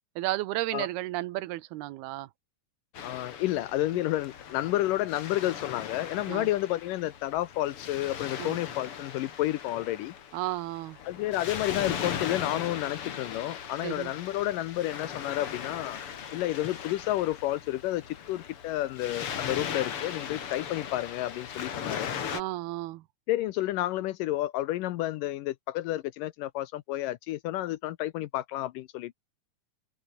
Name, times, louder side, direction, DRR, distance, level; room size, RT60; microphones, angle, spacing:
voice 1, 0.2-2.3 6.3-6.5 8.4-8.6 10.3-11.0 13.8-14.1 22.3-23.0, right 17 dB, 90° right, 2.9 m, -33 dB
Waves surf, 2.9-22.4, left 8 dB, 45° left, 2.2 m, -38 dB
voice 2, 3.0-10.1 11.1-16.0 16.3-18.0 18.3-22.2 23.3-29.1, left 15 dB, 75° left, 2.1 m, -30 dB
omnidirectional pair, 4.4 m